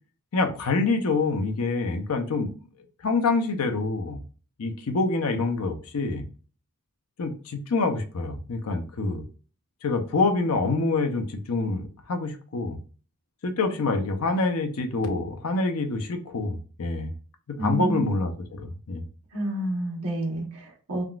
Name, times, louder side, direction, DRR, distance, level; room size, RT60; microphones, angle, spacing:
voice 1, 0.3-2.5 3.0-4.2 4.6-6.3 7.2-9.2 9.8-12.8 13.4-17.1 17.6-19.0, left 3 dB, 70° left, 6 dB, 0.6 m, -26 dB
voice 2, 17.6-18.1 19.3-21.0, right 1 dB, 65° right, -2 dB, 1.2 m, -29 dB
3.5 x 2.4 x 2.3 m, 0.38 s
head